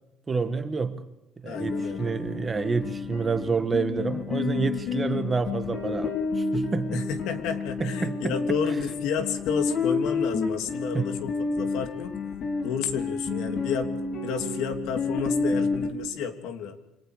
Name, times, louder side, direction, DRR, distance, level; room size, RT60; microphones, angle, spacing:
voice 1, 0.3-1.0 1.4-7.1 7.8-8.6 10.9-11.0, right 4 dB, 20° right, 1.5 m, -28 dB
voice 2, 1.4-2.1 6.9-12.1 12.6-13.9 14.2-16.8, left 7 dB, 70° left, 3.1 m, -31 dB
sound 1, 1.5-15.9, left 4 dB, 40° left, 4.1 m, -30 dB
29.0 x 25.5 x 5.0 m
cardioid pair, 160°, 0 cm